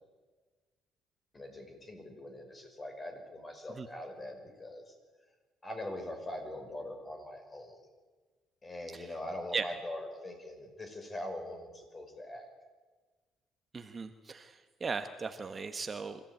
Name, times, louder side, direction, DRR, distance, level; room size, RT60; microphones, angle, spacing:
voice 1, 1.3-4.9 5.6-7.9 8.6-12.5, left 1 dB, 25° left, 4 dB, 5.8 m, -42 dB
voice 2, 13.7-16.2, right 4 dB, 30° right, 8 dB, 1.3 m, -37 dB
24.5 x 15.0 x 9.2 m, 1.4 s
cardioid pair, 90°, 0 cm